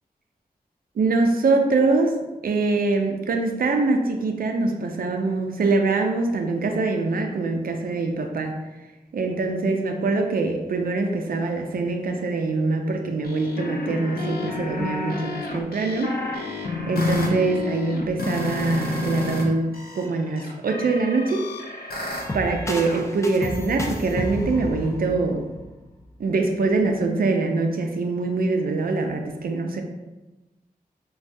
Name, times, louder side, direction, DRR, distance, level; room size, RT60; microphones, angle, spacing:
voice 1, 1.0-2.1 2.4-8.5 9.1-16.1 16.9-19.7 20.0-21.4 22.3-25.5 26.2-29.8, right 3 dB, 70° right, 4 dB, 0.4 m, -23 dB
sound 1, 13.2-19.4 19.7-23.0, left 2 dB, 75° left, 0.5 m, -30 dB
sound 2, 22.1-26.0, left 1 dB, 20° left, 0.4 m, -32 dB
3.3 x 2.3 x 2.6 m, 1.1 s
wide cardioid pair, 60°, 16 cm